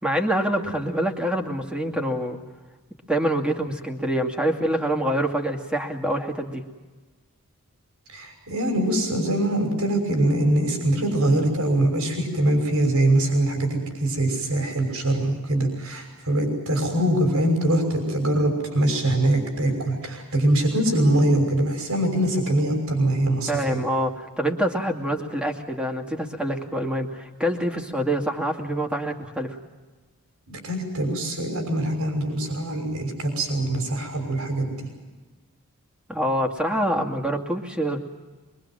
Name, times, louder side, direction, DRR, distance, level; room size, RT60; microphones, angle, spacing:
voice 1, 0.0-2.4 3.1-6.6 23.5-29.5 36.1-38.0, right 1 dB, 5° right, 2 dB, 2.4 m, -26 dB
voice 2, 8.1-23.8 30.5-34.9, right 1 dB, 75° right, 4 dB, 6.0 m, -23 dB
24.5 x 23.5 x 7.6 m, 1.3 s
head